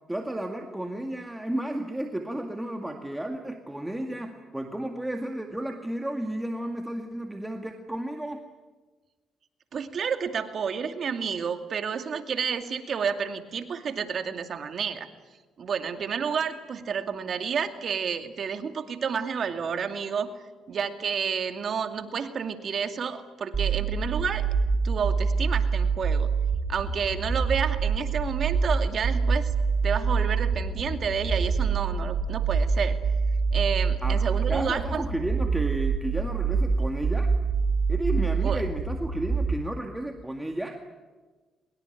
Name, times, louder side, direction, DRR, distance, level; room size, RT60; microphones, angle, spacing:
voice 1, 0.1-8.4 34.0-34.2 34.5-37.3 37.9-40.8, right 1 dB, 10° right, 3 dB, 2.1 m, -32 dB
voice 2, 9.7-15.1 15.6-20.3 20.7-24.5 24.8-26.3 26.7-29.5 29.8-33.0 33.5-35.0 38.4-38.6, right 6 dB, 55° right, 7 dB, 2.4 m, -30 dB
sound 1, 23.5-39.5, right 5 dB, 35° right, 5.4 m, -25 dB
23.5 x 22.0 x 9.2 m, 1.3 s
cardioid pair, 90°, 0 cm